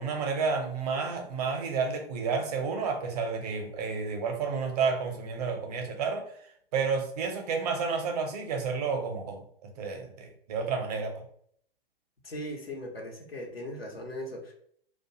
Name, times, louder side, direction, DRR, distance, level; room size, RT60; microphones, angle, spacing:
voice 1, 0.0-6.2 6.7-9.4 9.8-11.2, right 5 dB, 45° right, 4 dB, 0.6 m, -30 dB
voice 2, 12.2-14.5, equal, 90° left, 1 dB, 0.8 m, -38 dB
2.4 x 2.2 x 2.8 m, 0.63 s
figure-of-eight pair, 110°, 29 cm